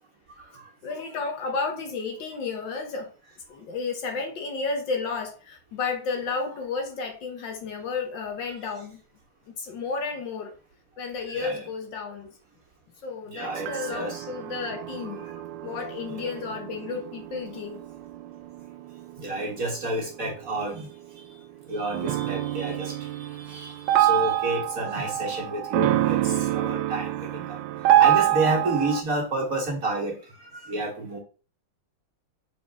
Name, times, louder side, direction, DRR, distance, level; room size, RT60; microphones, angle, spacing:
voice 1, 0.8-3.1 3.5-9.0 9.6-10.5 11.0-12.3 13.0-15.3 15.6-17.8, left 4 dB, 65° left, 1.7 m, -32 dB
voice 2, 11.3-11.6 13.3-14.3 15.0-15.3 16.2-16.3 19.2-20.9 21.2-21.3 21.7-27.6 28.0-31.2, right 2 dB, 45° right, 2.0 m, -30 dB
sound 1, 13.4-21.2 21.9-29.0, right 12 dB, 75° right, 1.1 m, -26 dB
6.4 x 4.3 x 3.5 m
omnidirectional pair, 2.3 m